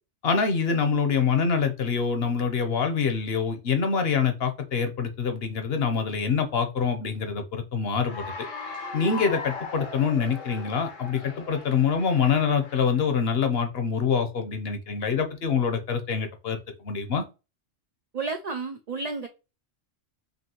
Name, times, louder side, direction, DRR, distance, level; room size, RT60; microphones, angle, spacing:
voice 1, 0.2-8.3 8.9-17.2, left 6 dB, 60° left, 0.9 m, -25 dB
Cheering / Applause, 7.9-13.1, left 3 dB, 85° left, 1.3 m, -38 dB
voice 2, 18.1-19.3, right 4 dB, 70° right, 0.3 m, -31 dB
5.3 x 2.7 x 2.9 m
omnidirectional pair, 1.3 m